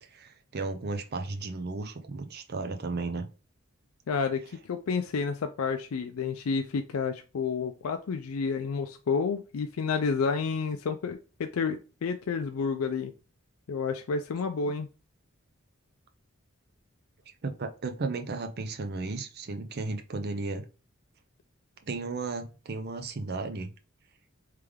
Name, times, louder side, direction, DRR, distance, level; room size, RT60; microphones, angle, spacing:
voice 1, 0.1-3.3 17.4-20.6 21.8-23.7, right 3 dB, 50° right, 7 dB, 0.6 m, -34 dB
voice 2, 4.1-13.1 13.7-14.9, left 5 dB, 80° left, 7 dB, 0.4 m, -30 dB
3.5 x 3.3 x 3.4 m, 0.32 s
head